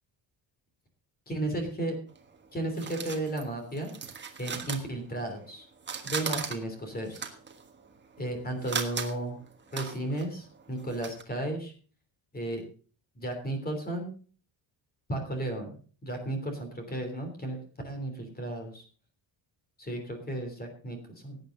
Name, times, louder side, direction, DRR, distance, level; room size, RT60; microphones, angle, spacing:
voice 1, 1.3-2.0 2.5-3.9 4.4-5.7 6.0-7.3 8.2-9.4 9.7-11.7 12.3-12.6 13.1-14.1 15.1-17.6 17.8-18.8 19.8-21.4, right 1 dB, 20° left, 5 dB, 3.2 m, -34 dB
sound 1, 2.1-5.5 5.8-11.2, right 6 dB, 25° right, 1.4 m, -38 dB
17.0 x 9.2 x 3.9 m, 0.40 s
cardioid pair, 175°, 45 cm